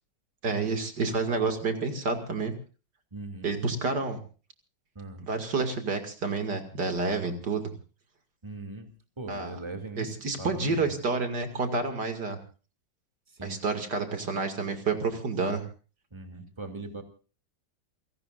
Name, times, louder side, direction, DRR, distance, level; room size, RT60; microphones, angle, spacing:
voice 1, 0.4-2.5 3.4-4.2 5.2-7.7 9.3-9.6 10.0-12.4 13.4-15.7, right 4 dB, 65° right, 6 dB, 3.0 m, -29 dB
voice 2, 3.1-3.5 3.8-4.0 4.9-5.3 8.4-8.9 9.2-10.9 13.3-13.6 16.1-17.0, right 2 dB, 15° right, 5 dB, 2.7 m, -40 dB
29.0 x 17.5 x 2.6 m, 0.37 s
omnidirectional pair, 1.9 m